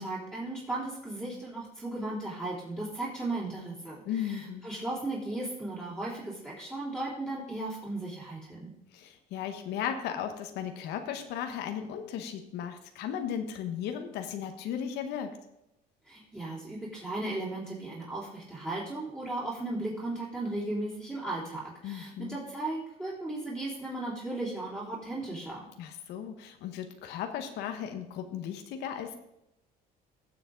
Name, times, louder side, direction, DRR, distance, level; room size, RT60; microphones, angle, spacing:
voice 1, 0.0-8.7 16.0-25.7, right 2 dB, 10° right, -9 dB, 3.6 m, -36 dB
voice 2, 4.0-4.6 8.9-15.4 21.8-22.4 25.8-29.2, left 9 dB, 85° left, 6 dB, 1.2 m, -36 dB
16.0 x 7.1 x 3.9 m, 0.87 s
cardioid pair, 110°, 17 cm